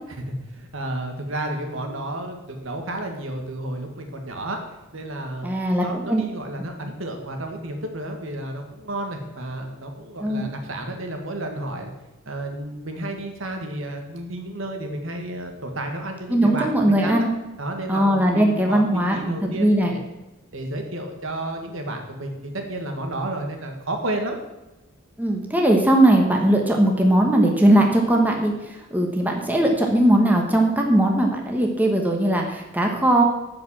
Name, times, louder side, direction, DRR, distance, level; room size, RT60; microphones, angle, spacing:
voice 1, 0.1-4.6 4.9-5.5 5.8-11.9 12.2-17.3 17.6-20.0 20.5-24.4, right 1 dB, 65° right, 4 dB, 1.6 m, -31 dB
voice 2, 5.4-6.2 10.2-10.4 16.3-17.3 17.9-19.9 25.2-28.5 28.9-33.2, right 1 dB, 10° right, 1 dB, 1.2 m, -19 dB
11.0 x 5.1 x 7.4 m, 1.0 s
head